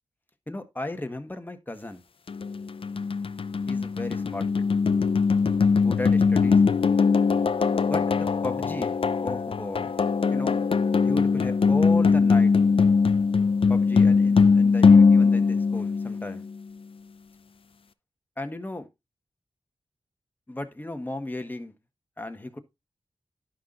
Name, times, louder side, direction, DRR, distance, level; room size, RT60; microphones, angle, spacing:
voice 1, 0.5-2.0 3.7-4.6 5.7-6.6 7.7-9.9 10.3-10.7 11.0-12.5 13.7-16.4 18.4-18.9 20.5-21.7 22.2-22.6, left 2 dB, 15° left, 1.4 m, -35 dB
sound 1, 2.3-16.5, left 5 dB, 60° left, 0.6 m, -21 dB
11.5 x 5.7 x 3.8 m
wide cardioid pair, 85°, 11 cm